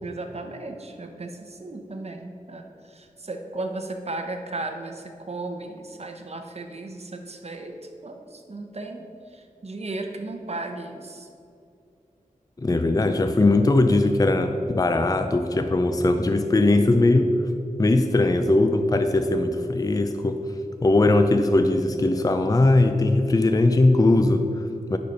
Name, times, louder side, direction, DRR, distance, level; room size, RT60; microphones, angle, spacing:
voice 1, 0.0-7.7 8.0-11.3, right 2 dB, 50° right, 4 dB, 0.9 m, -35 dB
voice 2, 12.6-17.3 17.8-20.4 20.8-25.0, left 2 dB, 25° left, 7 dB, 0.5 m, -20 dB
10.0 x 4.4 x 5.4 m, 2.5 s
wide cardioid pair, 55°, 14 cm